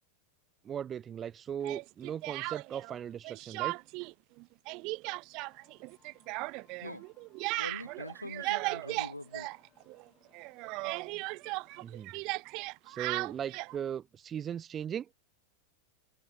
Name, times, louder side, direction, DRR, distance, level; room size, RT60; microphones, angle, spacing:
voice 1, 0.6-3.8 11.8-12.1 12.9-15.1, right 9 dB, 25° right, 1.1 m, -38 dB
Speech, 1.6-2.9 3.2-4.1 4.4-10.1 10.3-13.8, right 26 dB, 40° right, 0.4 m, -37 dB
sound 1, 5.4-12.1, left 9 dB, 25° left, 6.1 m, -70 dB
voice 2, 7.6-9.5, left 2 dB, 85° left, 3.0 m, -43 dB
figure-of-eight pair, 90°, 0 cm